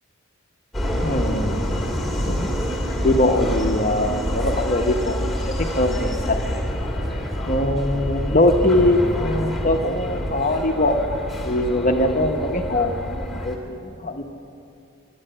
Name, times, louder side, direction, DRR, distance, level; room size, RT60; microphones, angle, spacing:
Subway metro underground, 0.7-13.6, equal, ahead, 2.0 m, -27 dB
voice 1, 1.0-1.6 2.3-2.5 3.0-5.3 5.7-6.2 7.5-11.2 11.4-14.2, left 1 dB, 35° left, 5 dB, 0.8 m, -21 dB
12.0 x 10.0 x 8.7 m, 2.5 s
head